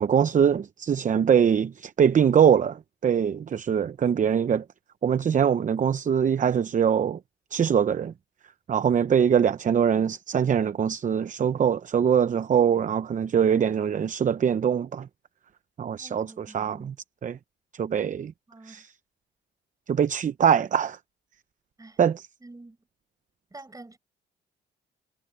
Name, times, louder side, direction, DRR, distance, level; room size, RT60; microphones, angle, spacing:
voice 1, 0.0-4.6 5.0-7.2 7.5-8.1 8.7-15.1 15.8-16.9 17.2-17.4 17.8-18.3 18.7-18.9 19.9-21.0 22.0-22.3, right 8 dB, 40° right, 0.7 m, -23 dB
voice 2, 15.9-16.9 18.5-18.8 21.8-22.0 22.4-22.8 23.5-24.0, right 2 dB, 15° right, 7.8 m, -47 dB
cardioid pair, 90°, 20 cm